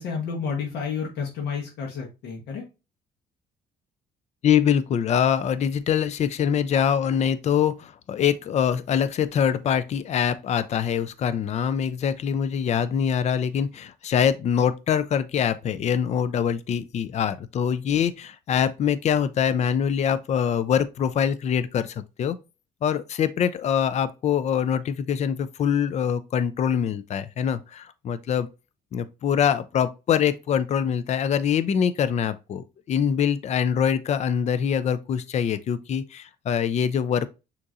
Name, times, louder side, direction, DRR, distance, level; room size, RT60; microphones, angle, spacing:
voice 1, 0.0-2.6, left 6 dB, 80° left, 1.2 m, -30 dB
voice 2, 4.4-22.4 22.8-28.5 28.9-37.3, left 8 dB, 40° left, 0.4 m, -24 dB
6.4 x 3.0 x 2.4 m
cardioid pair, 110°, 17 cm